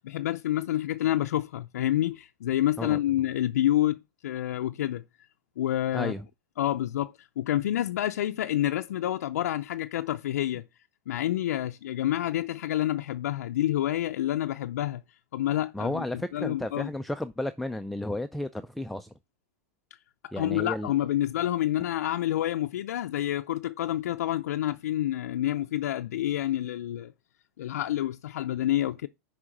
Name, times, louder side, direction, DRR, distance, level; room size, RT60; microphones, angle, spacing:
voice 1, 0.0-5.0 5.6-6.1 6.6-10.6 11.1-15.0 15.3-16.9 20.4-27.1 27.6-29.1, left 13 dB, 85° left, 0.4 m, -28 dB
voice 2, 15.7-19.1 20.3-20.9, left 1 dB, ahead, 0.4 m, -33 dB
6.3 x 5.0 x 5.9 m
supercardioid pair, 135°, 8 cm